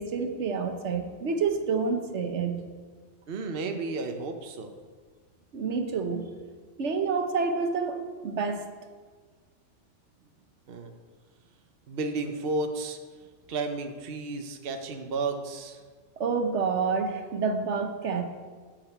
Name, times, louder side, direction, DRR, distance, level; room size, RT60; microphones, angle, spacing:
voice 1, 0.0-2.6 5.5-6.3 6.8-8.7 16.2-18.2, right 5 dB, 70° right, 6 dB, 1.3 m, -28 dB
voice 2, 3.3-4.7 10.7-10.9 11.9-13.0 13.5-15.8, right 3 dB, 55° right, 5 dB, 1.0 m, -32 dB
9.0 x 6.7 x 7.9 m, 1.5 s
omnidirectional pair, 1.2 m